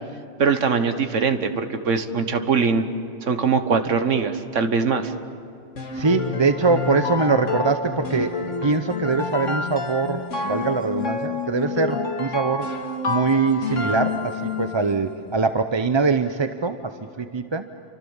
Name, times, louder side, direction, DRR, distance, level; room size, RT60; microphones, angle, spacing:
voice 1, 0.4-2.8 3.3-5.1, right 5 dB, 85° right, 8 dB, 1.7 m, -22 dB
sound 1, 5.8-14.9, left 4 dB, 90° left, 2.5 m, -28 dB
voice 2, 5.9-12.7 13.1-17.6, right 4 dB, 30° right, 8 dB, 0.7 m, -23 dB
30.0 x 25.0 x 7.3 m, 2.7 s
omnidirectional pair, 1.2 m